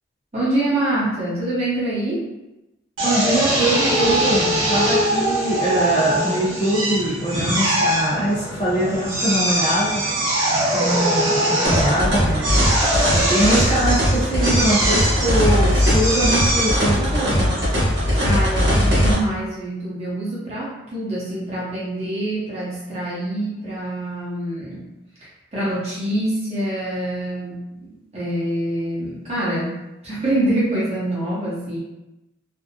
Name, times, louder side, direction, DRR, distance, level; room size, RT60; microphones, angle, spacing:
voice 1, 0.3-2.3 18.2-24.9 25.5-29.8 30.0-31.8, right 1 dB, 35° right, -8 dB, 0.7 m, -25 dB
voice 2, 3.0-10.0 10.7-12.6 13.1-17.5, right 1 dB, 30° left, -9 dB, 0.9 m, -22 dB
Drill, 3.0-18.3, right 1 dB, 80° right, 0.8 m, -22 dB
sound 1, 11.6-19.1, equal, 55° right, 1.0 m, -19 dB
2.5 x 2.0 x 2.6 m, 0.96 s
head